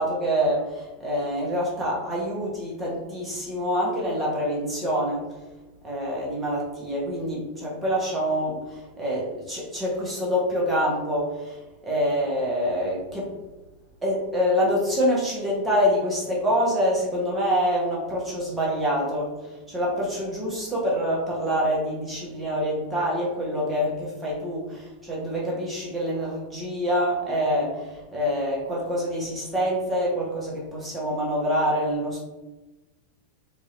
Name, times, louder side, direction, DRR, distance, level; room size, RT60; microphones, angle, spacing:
voice 1, 0.0-5.3 5.8-11.6 11.8-13.3 14.0-32.2, equal, 15° right, -5 dB, 1.3 m, -26 dB
4.6 x 2.7 x 2.7 m, 1.1 s
figure-of-eight pair, 90°, 0 cm